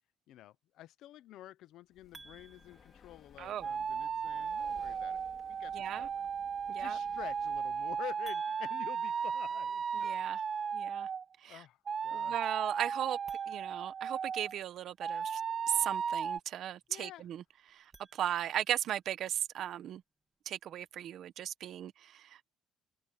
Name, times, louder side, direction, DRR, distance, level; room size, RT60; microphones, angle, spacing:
voice 1, 0.3-6.2 6.8-9.8 11.4-12.4 16.9-17.3, left 14 dB, 65° left, 0.8 m, -49 dB
Breathing, 1.9-8.0, left 7 dB, 35° left, 4.7 m, -60 dB
sound 1, 2.1-3.8 8.2-10.3 13.2-14.8 17.7-18.9, right 3 dB, 15° right, 2.7 m, -58 dB
voice 2, 3.4-3.7 5.7-6.1 6.7-7.0 10.0-10.4 10.7-11.1 11.4-11.6 12.1-13.2 13.5-15.4 15.7-17.4 17.7-20.0 20.5-22.5, right 11 dB, 50° right, 1.0 m, -37 dB
sound 2, 3.6-11.2 11.9-14.5 15.0-16.4, right 6 dB, 30° right, 0.4 m, -35 dB
open air
cardioid pair, 170°, 0 cm